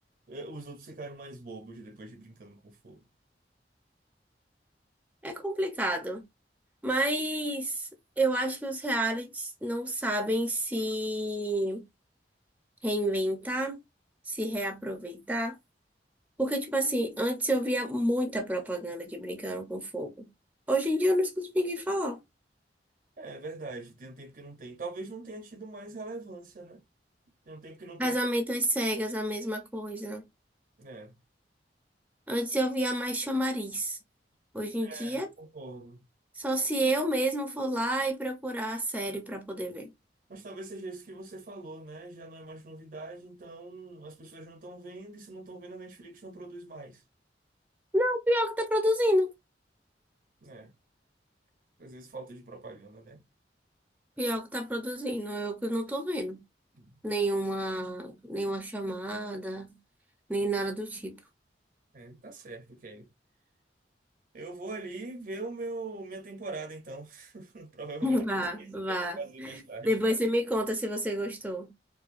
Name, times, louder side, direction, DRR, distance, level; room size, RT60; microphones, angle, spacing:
voice 1, 0.3-3.0 23.2-26.8 27.5-28.2 30.8-31.1 34.8-36.0 40.3-47.0 50.4-50.7 51.8-53.2 56.7-56.9 61.9-63.1 64.3-68.2 68.9-69.9, right 2 dB, 50° right, 0.7 m, -42 dB
voice 2, 5.2-6.2 6.8-7.9 8.2-11.8 12.8-13.8 14.3-15.5 16.4-20.3 20.7-22.2 28.0-30.3 32.3-34.0 34.5-35.3 36.4-39.9 47.9-49.3 54.2-56.4 57.0-59.8 60.3-61.2 68.0-71.7, right 1 dB, 10° right, 0.6 m, -29 dB
4.7 x 2.3 x 2.5 m
head